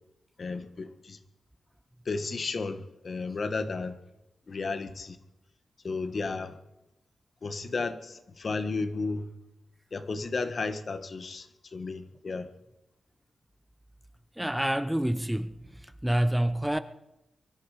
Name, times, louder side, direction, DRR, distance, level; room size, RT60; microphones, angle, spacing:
voice 1, 0.4-1.2 2.0-3.9 4.5-5.2 5.8-6.6 7.4-9.3 9.9-11.5 11.7-12.5, left 3 dB, 55° left, 1.4 m, -33 dB
voice 2, 14.4-15.6 16.0-16.8, right 1 dB, 5° right, 0.7 m, -27 dB
23.5 x 11.5 x 5.0 m
cardioid pair, 70°, 0 cm